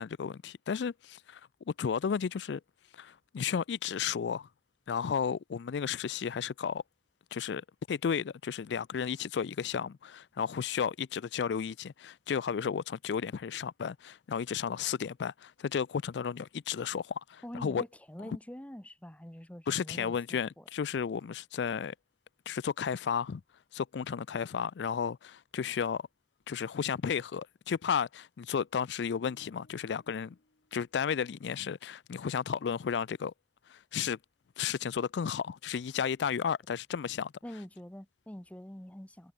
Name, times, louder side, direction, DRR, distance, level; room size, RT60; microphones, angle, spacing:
voice 1, 0.0-1.4 1.7-2.6 2.9-4.5 4.9-6.8 7.3-17.8 19.7-21.9 22.5-23.4 23.7-26.0 26.5-30.4 30.7-33.3 33.7-34.2 34.6-37.3, left 7 dB, 80° left, 0.4 m, -33 dB
voice 2, 17.4-20.6 37.4-39.3, equal, 10° left, 0.8 m, -45 dB
sound 1, 29.2-31.4, left 1 dB, 65° left, 2.6 m, -66 dB
head